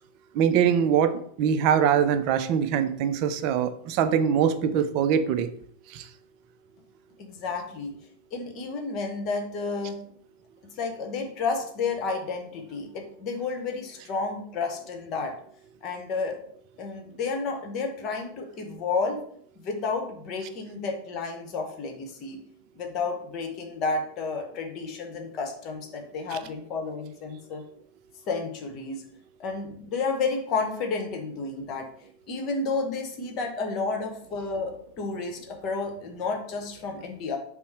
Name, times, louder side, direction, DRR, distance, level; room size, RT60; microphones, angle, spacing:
voice 1, 0.4-1.1 1.4-5.5 5.9-6.0, right 8 dB, 45° right, 10 dB, 0.4 m, -23 dB
voice 2, 7.2-7.9 8.3-10.0 10.8-15.3 15.8-16.4 16.8-19.2 19.6-22.4 22.7-27.6 28.3-29.0 29.4-31.9 32.3-37.4, left 4 dB, 35° left, 4 dB, 1.0 m, -31 dB
5.4 x 2.1 x 4.5 m, 0.62 s
figure-of-eight pair, 90°, 0 cm